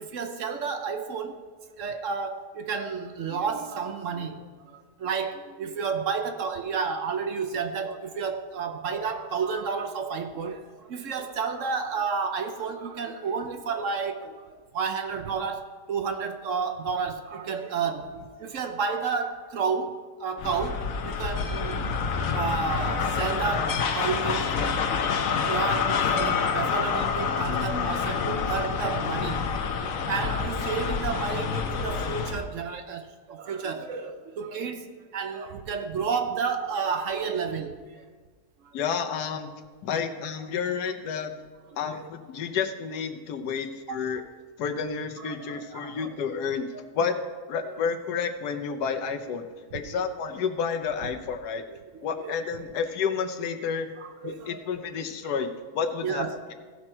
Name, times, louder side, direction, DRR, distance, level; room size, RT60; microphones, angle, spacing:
voice 1, 0.0-1.4 1.8-21.9 22.3-24.6 25.5-29.4 29.8-38.0 38.6-38.7 41.9-42.0 43.9-44.0 45.2-46.1 47.6-47.8 48.7-48.8 49.8-50.1 51.0-51.2 51.7-52.3 54.0-54.6 56.0-56.4, right 5 dB, 60° right, 1.0 m, -31 dB
sound 1, 20.4-32.5, left 6 dB, 65° left, 1.1 m, -27 dB
voice 2, 38.7-39.5 39.8-41.3 41.8-44.2 44.6-46.7 46.9-47.1 47.5-51.6 52.0-53.9 54.2-55.5 55.7-56.2, left 6 dB, 85° left, 1.4 m, -30 dB
15.5 x 6.1 x 4.4 m
omnidirectional pair, 1.7 m